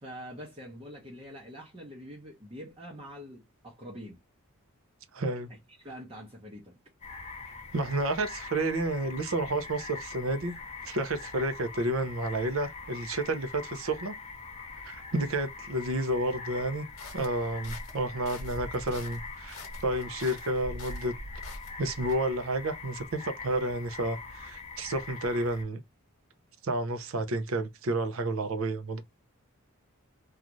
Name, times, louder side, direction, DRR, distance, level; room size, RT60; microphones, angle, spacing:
voice 1, 0.0-4.2 5.5-6.8, equal, 25° right, 0.7 m, -45 dB
voice 2, 5.1-5.5 7.7-10.6 10.8-14.1 14.8-16.9 17.1-21.1 21.8-25.8 26.6-29.0, right 1 dB, 65° right, 0.6 m, -30 dB
sound 1, 7.0-25.6, left 4 dB, 30° left, 0.6 m, -43 dB
sound 2, 17.0-22.1, left 1 dB, 65° left, 0.8 m, -43 dB
2.5 x 2.4 x 3.0 m
head